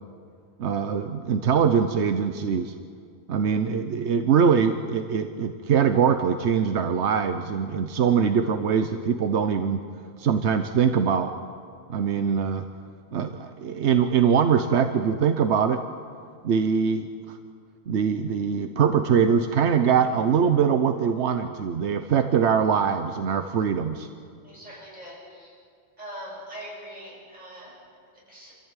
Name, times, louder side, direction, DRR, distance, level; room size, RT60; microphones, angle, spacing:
voice 1, 0.6-2.7 3.3-9.8 10.2-11.3 11.9-12.6 13.1-15.8 16.4-17.4 17.9-24.1, right 7 dB, 85° right, 8 dB, 1.1 m, -23 dB
voice 2, 24.4-25.6 26.0-28.6, equal, 40° right, -4 dB, 7.2 m, -42 dB
26.0 x 14.5 x 9.0 m, 2.2 s
omnidirectional pair, 1.1 m